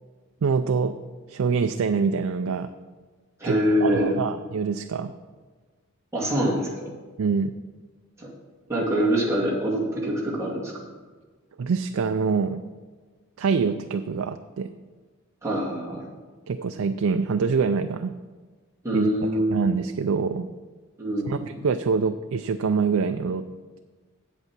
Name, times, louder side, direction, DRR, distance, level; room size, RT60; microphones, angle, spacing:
voice 1, 0.4-0.9 1.3-2.7 3.4-3.6 3.8-5.1 7.2-7.5 11.6-12.6 13.4-14.7 16.5-18.1 18.9-20.5 21.3-23.4, right 5 dB, 75° right, 8 dB, 0.4 m, -25 dB
voice 2, 3.4-4.2 6.1-6.9 8.2-8.3 8.7-10.7 15.4-16.1 18.8-19.5 21.0-21.7, equal, 15° right, -6 dB, 2.2 m, -25 dB
8.2 x 8.2 x 5.9 m, 1.4 s
head